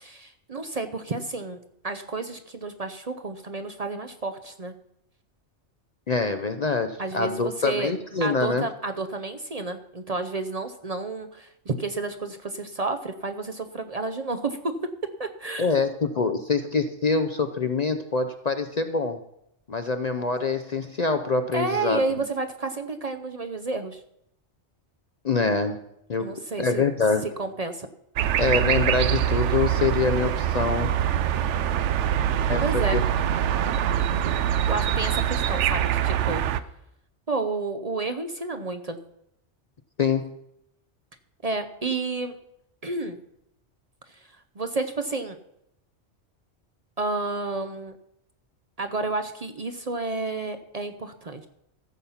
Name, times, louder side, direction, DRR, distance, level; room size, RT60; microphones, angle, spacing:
voice 1, 0.0-4.7 7.0-7.9 8.2-14.7 15.2-15.7 21.5-24.0 26.2-26.8 27.2-27.9 32.6-33.0 34.7-36.4 37.3-39.0 41.4-42.3 42.8-43.2 44.1-44.3 44.6-45.4 47.0-47.9 48.8-51.5, right 3 dB, 40° right, 7 dB, 0.7 m, -30 dB
voice 2, 6.1-8.7 15.6-19.2 19.7-22.0 25.2-25.8 26.1-26.3 26.6-27.2 28.4-30.9 32.5-33.0 40.0-40.3, left 4 dB, 45° left, 8 dB, 0.6 m, -25 dB
sound 1, 28.2-36.6, right 10 dB, 80° right, 0.9 m, -24 dB
15.0 x 7.2 x 5.6 m, 0.79 s
omnidirectional pair, 1.2 m